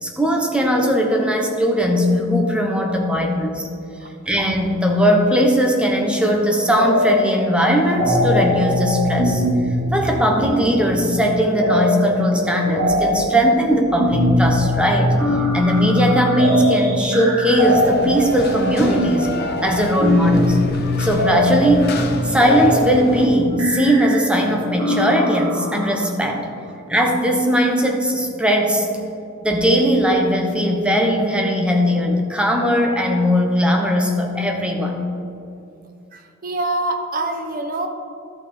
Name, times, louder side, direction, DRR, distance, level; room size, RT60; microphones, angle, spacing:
voice 1, 0.0-3.7 4.3-9.4 9.9-15.1 15.5-19.3 19.6-20.6 21.0-26.5 26.9-28.9 29.4-35.0, equal, 5° right, 1 dB, 1.0 m, -18 dB
sound 1, 6.8-7.4 7.7-25.9, left 1 dB, 60° right, 2.0 m, -22 dB
sound 2, 17.5-23.3, left 3 dB, 50° left, 0.9 m, -31 dB
voice 2, 36.1-37.9, right 2 dB, 40° right, 5 dB, 0.9 m, -25 dB
13.0 x 5.6 x 4.3 m, 2.6 s
head